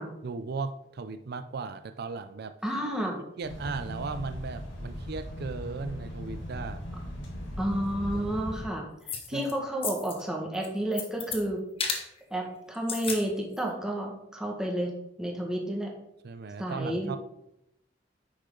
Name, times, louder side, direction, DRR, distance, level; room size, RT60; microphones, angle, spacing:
voice 1, 0.2-2.6 3.4-6.8 8.1-8.4 9.3-9.5 16.2-17.2, right 4 dB, 60° right, 9 dB, 0.5 m, -36 dB
voice 2, 2.6-3.1 7.6-11.6 12.3-14.9 15.2-15.9 16.6-17.1, right 1 dB, 5° right, -1 dB, 1.7 m, -31 dB
sound 1, 3.4-8.6, equal, 80° left, 2.3 m, -38 dB
sound 2, 9.1-9.5 9.8-10.2 10.5-11.4 11.8-12.1 12.7-13.2 13.6-13.7, left 5 dB, 30° left, 1.1 m, -33 dB
9.6 x 6.5 x 3.9 m, 0.83 s
head